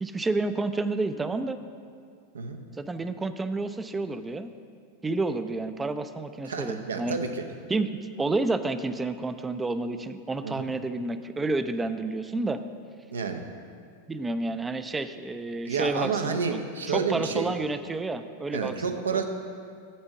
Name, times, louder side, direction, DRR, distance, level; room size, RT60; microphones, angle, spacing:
voice 1, 0.0-1.6 2.8-4.5 5.0-7.2 7.7-12.6 14.1-16.6 16.9-19.2, right 3 dB, 10° right, 11 dB, 0.4 m, -30 dB
voice 2, 6.4-7.4 10.4-10.7 13.1-13.5 15.6-17.5 18.5-19.2, right 5 dB, 70° right, 6 dB, 0.7 m, -30 dB
8.6 x 4.4 x 7.0 m, 2.2 s
figure-of-eight pair, 90°, 0 cm